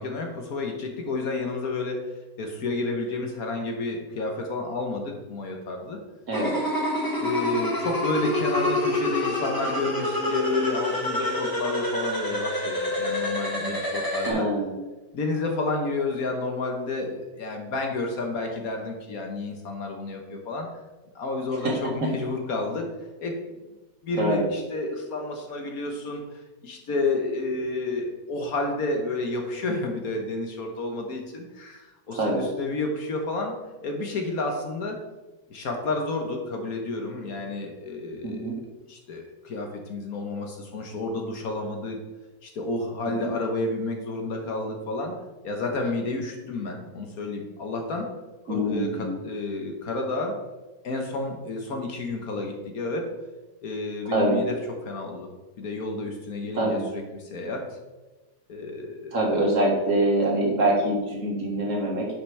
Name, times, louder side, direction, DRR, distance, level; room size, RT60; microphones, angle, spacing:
voice 1, 0.0-2.0 2.4-6.0 7.2-14.5 15.1-20.7 21.1-22.9 23.2-23.4 24.0-33.6 33.8-35.0 35.5-42.0 42.4-45.1 45.4-48.1 48.4-50.4 50.8-53.1 53.6-54.6 54.8-55.3 55.6-57.7 58.5-59.2, left 2 dB, 60° left, 2 dB, 1.4 m, -30 dB
sound 1, 6.3-14.3, left 1 dB, 15° left, 1.5 m, -27 dB
voice 2, 14.3-14.7 21.6-21.7 24.2-24.4 32.1-32.5 38.2-38.5 43.2-43.3 48.5-49.2 54.1-54.4 56.5-56.9 59.1-62.1, right 1 dB, 50° right, -2 dB, 1.9 m, -24 dB
9.8 x 5.7 x 3.3 m, 1.1 s
omnidirectional pair, 1.8 m